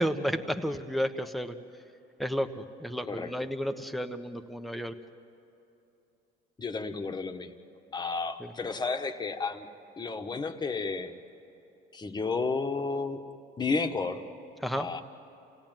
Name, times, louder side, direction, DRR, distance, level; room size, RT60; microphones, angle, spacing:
voice 1, 0.0-1.5 2.2-2.5 2.8-4.9 8.4-8.5 14.6-14.9, equal, ahead, 7 dB, 1.2 m, -31 dB
voice 2, 6.6-7.5 7.9-9.7 10.0-11.1 11.9-13.2 13.6-14.2 14.8-15.0, left 4 dB, 25° left, 6 dB, 1.5 m, -32 dB
28.5 x 17.5 x 9.2 m, 2.9 s
cardioid pair, 110°, 17 cm